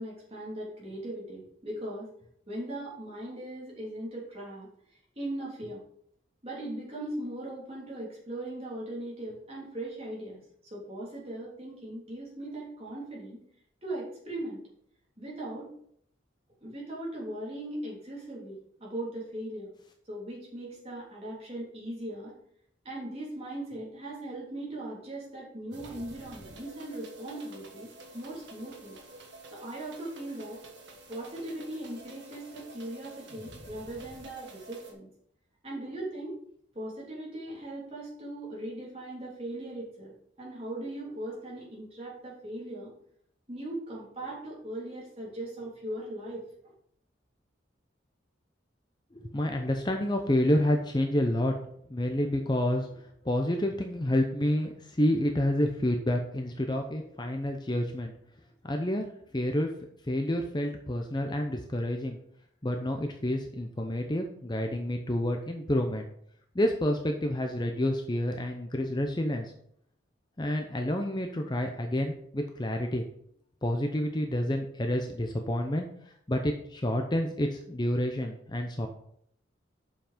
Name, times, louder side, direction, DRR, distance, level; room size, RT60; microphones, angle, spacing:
voice 1, 0.0-2.1 2.5-4.7 5.1-5.8 6.4-13.4 13.8-14.6 15.2-15.7 16.6-19.7 20.1-22.3 22.8-29.0 29.5-30.6 31.1-35.1 35.6-36.3 36.7-42.9 43.5-46.7, right 1 dB, 30° right, -5 dB, 3.2 m, -39 dB
sound 1, 25.7-34.9, right 2 dB, 70° right, 1.5 m, -49 dB
voice 2, 49.1-51.6 51.9-58.1 58.6-59.1 59.3-59.7 60.1-62.2 62.6-66.1 66.5-69.5 70.4-73.0 73.6-75.9 76.3-78.9, left 1 dB, 20° left, 4 dB, 0.7 m, -29 dB
7.2 x 5.8 x 5.1 m, 0.67 s
head